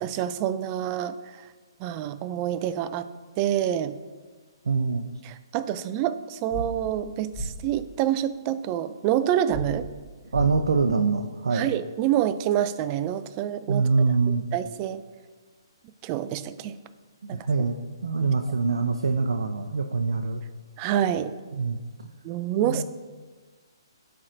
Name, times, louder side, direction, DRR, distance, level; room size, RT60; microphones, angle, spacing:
voice 1, 0.0-1.4 1.8-3.1 3.4-3.9 5.3-9.9 11.5-13.9 14.5-15.0 16.0-16.8 17.3-17.5 20.8-21.3 22.2-22.8, right 11 dB, 30° right, 13 dB, 0.3 m, -27 dB
voice 2, 4.7-5.1 10.3-11.7 13.7-14.4 17.2-20.4 21.5-21.8 22.6-22.8, right 4 dB, 80° right, 5 dB, 0.5 m, -24 dB
sound 1, 6.5-6.6 7.3-7.5 9.5-9.6 10.3-10.5, right 1 dB, 30° left, 1.8 m, -31 dB
13.0 x 4.5 x 2.6 m, 1.4 s
hypercardioid pair, 145°, 3 cm